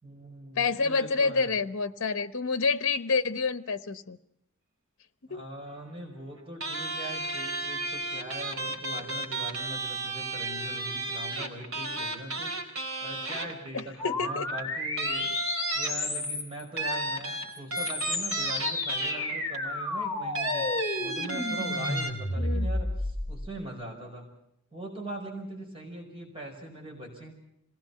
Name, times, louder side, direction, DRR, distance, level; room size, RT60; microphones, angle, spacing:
voice 1, 0.0-1.6 5.3-15.3 15.7-20.7 21.0-24.3 24.7-27.3, right 1 dB, 25° right, 1 dB, 5.2 m, -41 dB
voice 2, 0.6-4.2 5.3-5.4 13.7-14.5 22.4-22.7, left 4 dB, 60° left, 12 dB, 1.0 m, -28 dB
sound 1, 6.6-14.0 14.5-14.6 15.0-16.3 16.8-19.6 20.4-22.1, right 2 dB, 65° right, 4.2 m, -33 dB
sound 2, 14.0-16.6 17.5-23.5, left 2 dB, 15° left, 5.8 m, -32 dB
26.5 x 19.0 x 5.8 m, 0.77 s
head